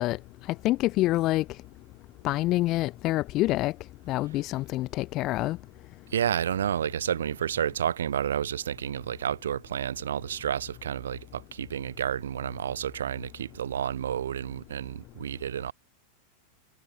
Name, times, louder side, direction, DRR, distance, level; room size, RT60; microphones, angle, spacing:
voice 1, 0.0-1.6 2.2-3.7 4.1-5.6, left 17 dB, 35° left, 0.8 m, -27 dB
voice 2, 6.1-15.7, right 9 dB, 65° right, 3.1 m, -30 dB
figure-of-eight pair, 90°, 0 cm